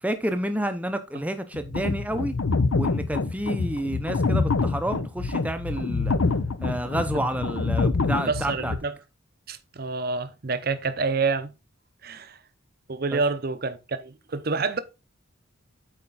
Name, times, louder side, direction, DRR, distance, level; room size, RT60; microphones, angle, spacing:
voice 1, 0.0-2.4 2.7-6.2 6.6-8.7 13.1-13.2, right 1 dB, 5° right, 0.6 m, -29 dB
sound 1, 1.5-8.8, left 3 dB, 75° left, 0.6 m, -26 dB
voice 2, 8.2-8.9 9.5-11.5 12.0-12.4 12.9-14.8, right 4 dB, 45° right, 0.7 m, -28 dB
8.7 x 4.4 x 4.0 m
head